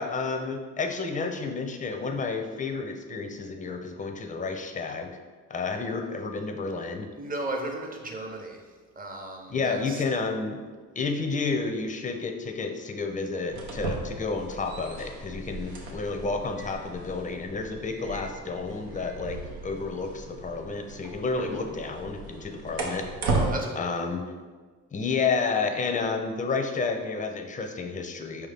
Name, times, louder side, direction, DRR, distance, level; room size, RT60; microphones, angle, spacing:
voice 1, 0.0-5.1 5.5-7.1 9.5-10.6 11.0-23.4 23.8-24.2 24.9-28.5, left 4 dB, 20° left, 5 dB, 0.5 m, -30 dB
voice 2, 7.1-8.6 9.0-10.0 23.3-23.9, right 2 dB, 25° right, 2 dB, 0.8 m, -35 dB
sound 1, 13.4-23.5, right 3 dB, 80° right, 0.8 m, -35 dB
4.7 x 2.7 x 3.4 m, 1.4 s
supercardioid pair, 65°, 35 cm